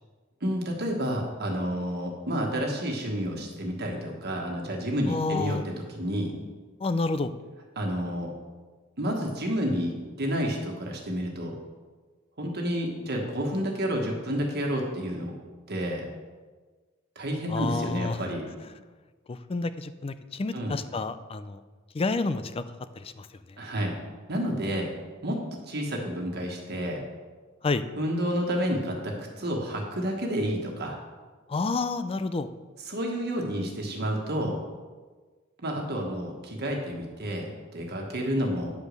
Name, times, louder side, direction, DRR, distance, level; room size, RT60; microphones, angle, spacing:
voice 1, 0.4-6.3 7.7-8.3 9.0-11.5 12.4-15.3 15.7-16.0 17.1-18.4 20.5-20.8 23.6-23.9 24.3-24.9 25.2-25.4 25.7-27.0 28.0-31.0 32.8-34.6 35.6-38.7, equal, 55° right, 0 dB, 1.4 m, -30 dB
voice 2, 5.1-5.6 6.8-7.3 17.5-18.2 19.3-21.6 21.9-22.7 23.0-23.3 27.6-27.9 31.5-32.5, left 3 dB, 30° left, 12 dB, 0.4 m, -29 dB
9.3 x 5.1 x 6.6 m, 1.4 s
head